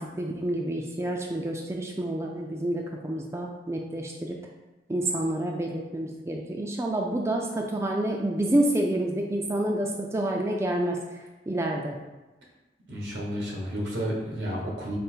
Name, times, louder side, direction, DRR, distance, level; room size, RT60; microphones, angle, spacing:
voice 1, 0.0-4.4 4.9-12.0, right 1 dB, 15° right, 1 dB, 0.3 m, -28 dB
voice 2, 12.9-15.0, equal, 90° right, -2 dB, 1.2 m, -31 dB
5.0 x 2.1 x 4.4 m, 1.1 s
head